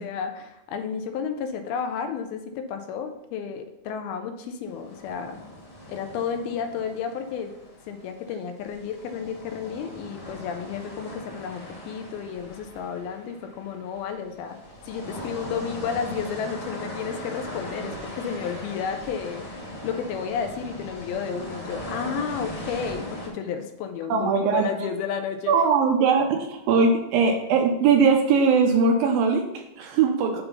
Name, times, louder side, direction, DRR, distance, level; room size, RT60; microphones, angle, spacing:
voice 1, 0.0-5.4 5.9-7.5 7.9-14.6 14.9-19.4 19.8-25.5, left 7 dB, 80° left, 6 dB, 2.4 m, -32 dB
sound 1, 4.8-8.3 8.6-23.3, left 1 dB, 35° left, 2.1 m, -39 dB
voice 2, 24.1-24.7 25.5-30.4, right 5 dB, 80° right, 3 dB, 2.3 m, -20 dB
6.8 x 4.3 x 5.5 m, 0.84 s
omnidirectional pair, 4.5 m